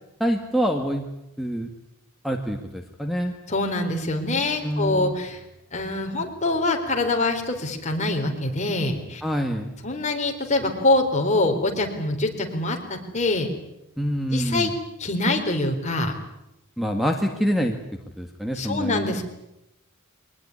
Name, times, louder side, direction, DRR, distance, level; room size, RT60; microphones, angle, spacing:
voice 1, 0.2-1.1 1.4-1.7 2.2-3.3 4.6-5.1 9.2-9.7 14.0-14.7 16.8-17.8 18.2-19.2, equal, ahead, 5 dB, 1.7 m, -26 dB
voice 2, 3.5-5.4 5.7-9.2 9.8-13.5 14.3-14.7 15.0-16.1 18.6-19.2, left 2 dB, 35° left, 3 dB, 4.1 m, -24 dB
23.0 x 19.5 x 10.0 m, 0.88 s
head